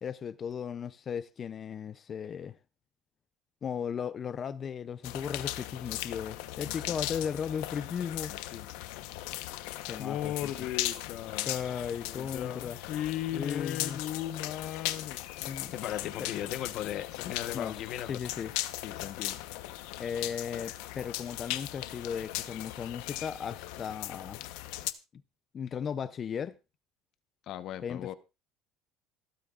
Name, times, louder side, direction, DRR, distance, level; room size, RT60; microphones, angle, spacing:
voice 1, 0.0-2.5 3.6-8.3 9.9-10.5 11.5-12.8 13.3-14.0 15.4-15.7 16.2-16.3 17.5-18.5 20.0-24.4 25.5-26.6 27.8-28.1, left 7 dB, 35° left, 0.6 m, -36 dB
sound 1, 5.0-24.9, left 15 dB, 85° left, 1.0 m, -38 dB
voice 2, 8.3-8.7 10.0-11.6 12.0-18.2 18.8-19.4 27.5-28.1, left 12 dB, 55° left, 1.1 m, -37 dB
27.5 x 9.1 x 2.5 m
cardioid pair, 125°, 0 cm